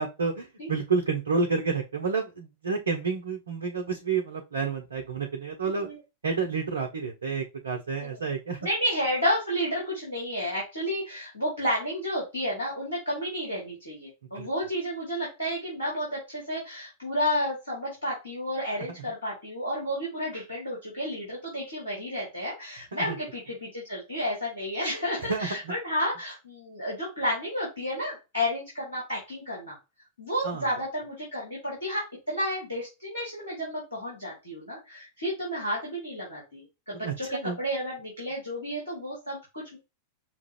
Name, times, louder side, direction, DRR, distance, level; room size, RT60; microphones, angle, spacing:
voice 1, 0.0-5.9 6.2-8.6 14.3-14.5 22.9-23.2 25.2-25.7 30.4-30.7 37.0-37.6, right 5 dB, 70° right, 2 dB, 0.7 m, -30 dB
voice 2, 5.6-6.0 8.0-8.2 8.6-29.8 30.2-39.8, equal, 80° left, -5 dB, 2.4 m, -31 dB
5.8 x 2.5 x 3.1 m, 0.26 s
figure-of-eight pair, 90°, 0 cm